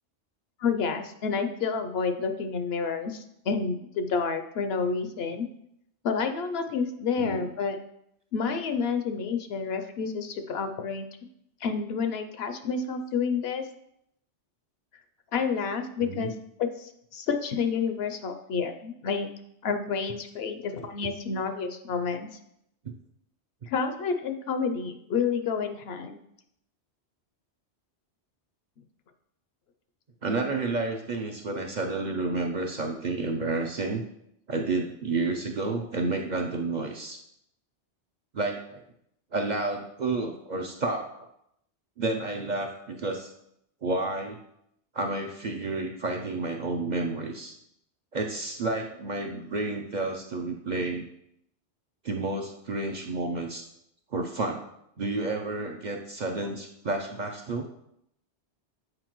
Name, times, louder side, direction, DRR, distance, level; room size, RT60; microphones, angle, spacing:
voice 1, 0.6-5.5 6.0-7.8 8.3-11.1 11.6-13.7 15.3-16.3 16.6-19.3 19.6-22.3 23.7-26.2, left 5 dB, 65° left, 8 dB, 0.8 m, -29 dB
voice 2, 7.2-7.5 16.0-16.3 22.8-22.9 30.2-34.0 34.5-37.2 38.3-38.8 39.3-41.3 42.0-43.3 43.8-44.4 44.9-47.6 48.1-51.1 52.0-53.7 54.1-54.7 55.0-57.7, right 3 dB, 55° right, 2 dB, 0.5 m, -30 dB
7.8 x 4.6 x 3.0 m, 0.76 s
omnidirectional pair, 1.2 m